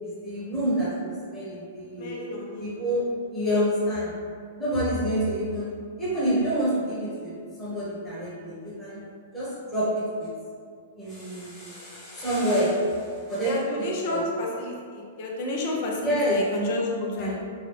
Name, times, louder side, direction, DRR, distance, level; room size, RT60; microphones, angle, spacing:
voice 1, 0.0-0.9 1.3-2.1 2.6-4.1 4.6-5.7 6.0-7.3 7.6-9.0 9.3-10.3 11.0-13.6 14.1-14.2 16.0-16.4 17.2-17.4, equal, 10° left, -11 dB, 1.2 m, -27 dB
voice 2, 2.0-2.7 13.4-17.4, left 1 dB, 50° left, -2 dB, 0.7 m, -30 dB
3.1 x 2.3 x 3.3 m, 2.1 s
hypercardioid pair, 110°, 0 cm